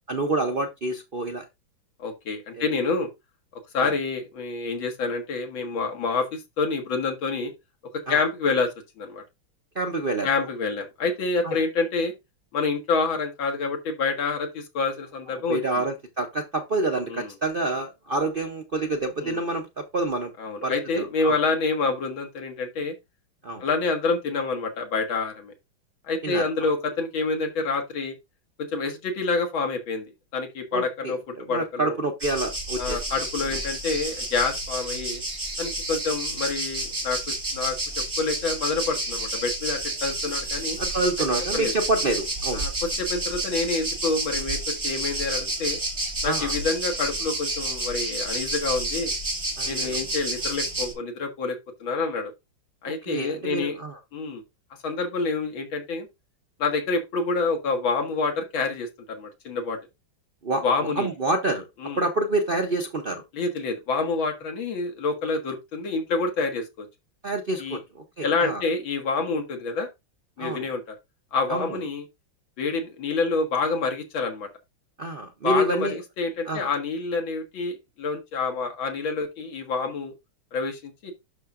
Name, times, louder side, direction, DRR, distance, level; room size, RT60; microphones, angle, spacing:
voice 1, 0.1-1.5 2.6-2.7 3.8-3.9 8.1-8.2 9.7-10.3 11.4-11.6 15.3-20.3 20.6-21.4 23.4-23.6 26.2-26.4 30.7-33.0 33.5-33.6 40.8-42.7 46.2-46.5 49.6-50.0 52.8-54.0 60.4-61.7 62.0-63.2 67.2-68.6 70.4-70.7 71.5-71.8 75.0-76.0 76.5-76.7, right 2 dB, 60° right, 0.5 m, -28 dB
voice 2, 2.0-3.1 3.5-7.5 8.1-8.7 9.0-9.2 10.2-12.1 12.5-15.6 17.1-17.3 19.2-19.4 20.4-22.9 23.6-25.5 26.1-28.2 28.6-32.0 32.8-35.2 35.6-40.8 41.5-41.7 42.5-42.7 43.0-45.8 46.2-49.1 49.7-52.3 52.8-53.8 54.1-54.4 54.8-56.1 56.6-59.8 60.6-61.1 61.8-62.0 63.3-66.9 67.6-67.8 68.2-69.9 70.4-71.0 71.3-72.0 72.6-74.5 75.4-80.1 80.5-81.1, left 4 dB, 75° left, 2.5 m, -27 dB
sound 1, 32.2-50.9, right 2 dB, 30° right, 2.8 m, -30 dB
11.5 x 5.7 x 2.5 m
omnidirectional pair, 2.2 m